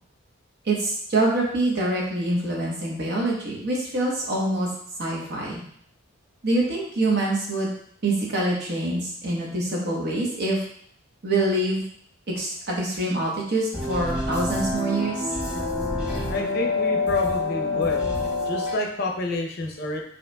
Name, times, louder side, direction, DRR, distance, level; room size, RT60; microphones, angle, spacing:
voice 1, 0.6-4.7 5.0-5.6 6.4-7.7 8.0-10.6 11.2-11.8 12.3-15.2, right 2 dB, 50° right, -3 dB, 1.0 m, -25 dB
sound 1, 13.7-18.7, left 3 dB, 5° right, 1.0 m, -26 dB
voice 2, 16.3-18.0 18.4-20.0, left 2 dB, 50° left, 2 dB, 0.6 m, -29 dB
5.2 x 2.9 x 2.2 m, 0.64 s
head